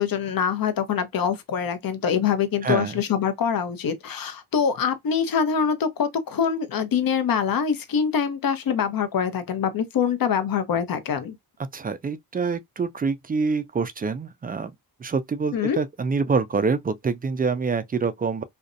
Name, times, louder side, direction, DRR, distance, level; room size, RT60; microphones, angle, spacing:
voice 1, 0.0-11.3 15.5-15.8, left 7 dB, 50° left, 0.7 m, -24 dB
voice 2, 2.6-3.0 11.7-14.7 15.0-18.4, right 4 dB, 25° right, 0.3 m, -26 dB
2.5 x 2.1 x 2.5 m
supercardioid pair, 40°, 43 cm